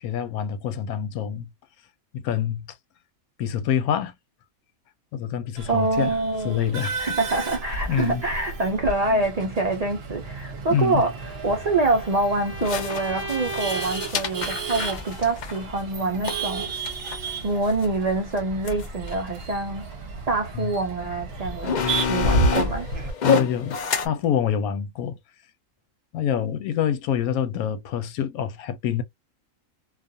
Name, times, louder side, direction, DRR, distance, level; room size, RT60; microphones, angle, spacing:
voice 1, 0.0-1.5 2.1-2.7 3.4-4.1 5.1-6.2 6.4-7.1 7.9-8.2 9.1-9.2 10.7-11.0 20.5-20.7 23.2-23.8 24.0-25.2 26.1-29.0, left 9 dB, 90° left, 1.1 m, -26 dB
Male speech man speaking / Laughter / Chatter, 5.6-23.1, right 2 dB, 55° right, 0.8 m, -32 dB
voice 2, 5.7-6.6 7.0-11.1 11.4-16.7 17.4-19.8 20.3-21.8 22.1-22.9, right 2 dB, 85° right, 0.3 m, -25 dB
Bowed string instrument, 11.1-14.1, right 2 dB, 10° right, 0.4 m, -36 dB
sound 1, 11.4-11.5 12.6-17.9 18.4-18.5 18.7-19.1 19.9-20.0 20.9-21.0 21.4-24.1, left 6 dB, 65° left, 0.4 m, -28 dB
2.4 x 2.4 x 2.6 m
omnidirectional pair, 1.5 m